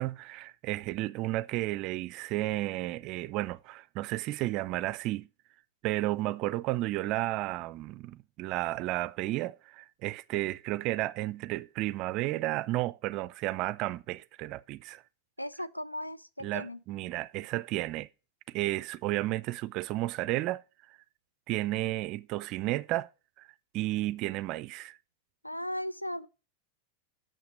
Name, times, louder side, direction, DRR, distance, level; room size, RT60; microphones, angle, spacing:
voice 1, 0.0-5.3 5.8-15.0 16.4-18.1 18.5-20.6 21.5-23.1 23.4-23.5 23.7-25.0, right 17 dB, 40° right, 0.4 m, -32 dB
voice 2, 15.4-16.8 25.4-26.3, left 1 dB, 90° left, 0.5 m, -37 dB
7.1 x 5.8 x 7.5 m
figure-of-eight pair, 90°, 0 cm